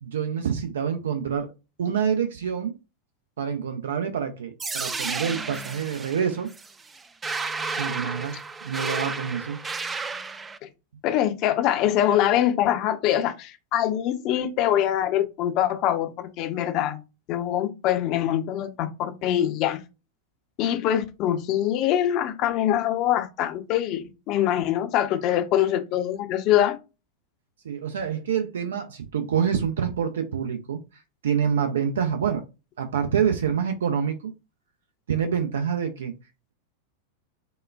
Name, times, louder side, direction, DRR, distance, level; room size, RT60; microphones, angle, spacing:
voice 1, 0.0-1.5 1.8-2.7 3.4-6.5 7.8-9.6 27.6-30.8 31.2-32.4 32.8-34.3 35.1-36.1, right 7 dB, 65° right, 0.6 m, -27 dB
sound 1, 4.6-10.6, right 4 dB, 15° right, 0.3 m, -32 dB
voice 2, 11.0-17.0 17.3-19.8 20.6-26.8, left 11 dB, 40° left, 0.6 m, -24 dB
5.0 x 2.2 x 2.3 m
figure-of-eight pair, 90°, 0 cm